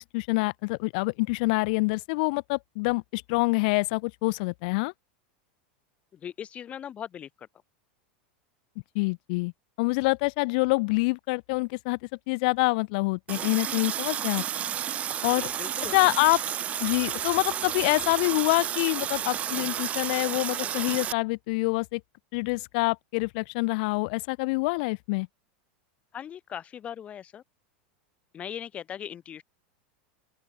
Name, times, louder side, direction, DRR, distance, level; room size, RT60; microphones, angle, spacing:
voice 1, 0.0-4.9 8.9-9.5 9.8-12.0 12.3-14.4 15.2-15.5 15.9-16.4 16.8-22.0 22.3-25.3, left 28 dB, 55° left, 0.8 m, -26 dB
voice 2, 6.1-7.5 15.4-16.1 26.1-27.4 28.3-29.4, left 9 dB, 25° left, 1.6 m, -39 dB
Water tap faucet, 13.3-21.1, right 10 dB, 25° right, 1.2 m, -31 dB
open air
supercardioid pair, 150°, 5 cm